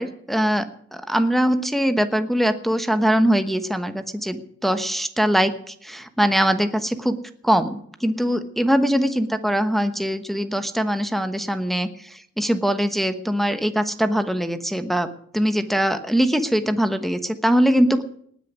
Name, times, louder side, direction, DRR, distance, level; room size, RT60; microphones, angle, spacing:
voice 1, 0.0-7.2 7.4-18.0, equal, ahead, 8 dB, 1.1 m, -22 dB
19.0 x 6.6 x 9.5 m, 0.64 s
wide cardioid pair, 110°, 29 cm